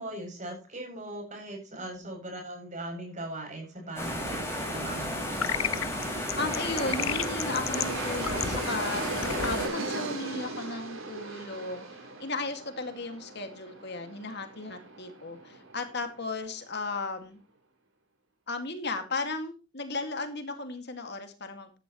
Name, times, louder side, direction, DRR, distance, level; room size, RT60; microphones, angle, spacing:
voice 1, 0.0-5.4, right 1 dB, 35° right, 2 dB, 7.7 m, -39 dB
voice 2, 1.7-2.1 6.4-17.4 18.5-21.8, left 3 dB, 55° left, 6 dB, 2.1 m, -35 dB
sound 1, 4.0-9.7, left 1 dB, 10° left, 5.7 m, -33 dB
sound 2, 5.4-10.7, left 9 dB, 75° left, 0.8 m, -35 dB
Aircraft, 5.8-16.4, right 3 dB, 75° right, 5.4 m, -39 dB
15.0 x 12.5 x 3.1 m, 0.31 s
head